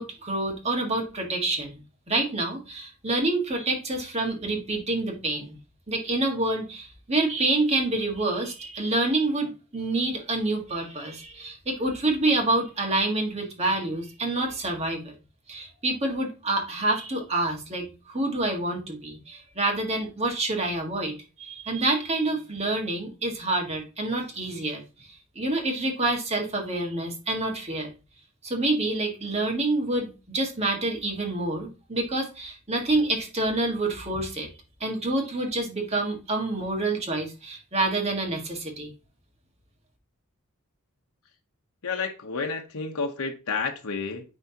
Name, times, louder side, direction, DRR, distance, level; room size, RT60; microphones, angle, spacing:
voice 1, 0.0-1.8 2.1-5.6 5.9-15.1 15.5-25.1 25.3-27.9 28.4-34.5 34.8-38.9, right 2 dB, 30° right, 1.6 m, -27 dB
voice 2, 41.8-44.2, left 4 dB, 85° left, 0.9 m, -30 dB
9.4 x 3.6 x 2.8 m
head